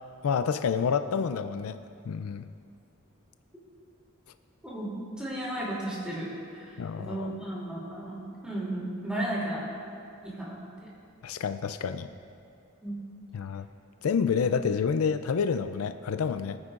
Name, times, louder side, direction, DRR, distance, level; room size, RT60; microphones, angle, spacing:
voice 1, 0.2-1.8 2.0-2.5 6.8-7.3 11.2-12.1 13.3-13.7 14.0-16.6, left 6 dB, 90° left, 10 dB, 0.4 m, -28 dB
voice 2, 4.6-9.7 10.2-10.9 12.8-13.0, right 1 dB, 5° right, -6 dB, 2.8 m, -34 dB
22.5 x 9.7 x 2.5 m, 2.5 s
head